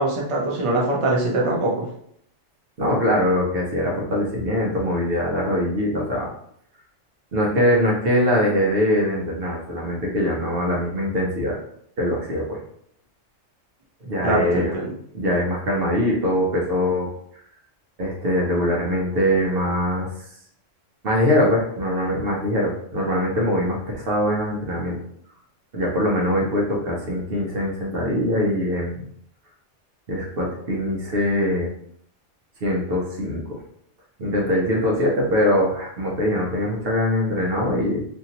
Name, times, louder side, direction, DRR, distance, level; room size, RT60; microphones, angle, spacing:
voice 1, 0.0-1.9 14.2-14.9, right 2 dB, 35° right, -3 dB, 0.5 m, -22 dB
voice 2, 2.8-6.3 7.3-11.6 12.0-12.6 14.0-14.7 15.1-17.1 18.0-20.1 21.0-25.0 25.7-29.0 30.1-31.7 32.6-33.6 34.2-38.1, left 1 dB, 55° right, -2 dB, 0.9 m, -22 dB
2.9 x 2.6 x 2.8 m, 0.67 s
omnidirectional pair, 1.3 m